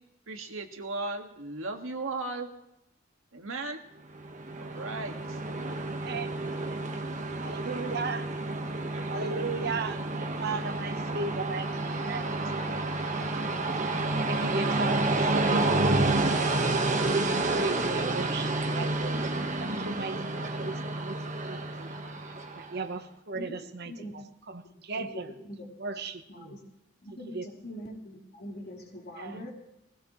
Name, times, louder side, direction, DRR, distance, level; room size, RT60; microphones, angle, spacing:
voice 1, 0.3-2.5 3.3-3.8 4.6-5.4, right 3 dB, 90° right, 3 dB, 1.7 m, -36 dB
Train, 4.1-22.8, right 2 dB, 40° right, 1.3 m, -29 dB
voice 2, 5.8-6.4 6.7-7.0 7.4-8.3 9.0-12.9 13.8-16.5 17.2-21.2 21.4-22.0 22.2-25.4 25.8-26.6 27.1-27.5 29.2-29.5, right 4 dB, 55° right, 8 dB, 1.0 m, -37 dB
voice 3, 27.0-27.4 27.6-29.5, equal, 55° left, -2 dB, 3.0 m, -42 dB
20.5 x 16.5 x 3.1 m, 0.86 s
head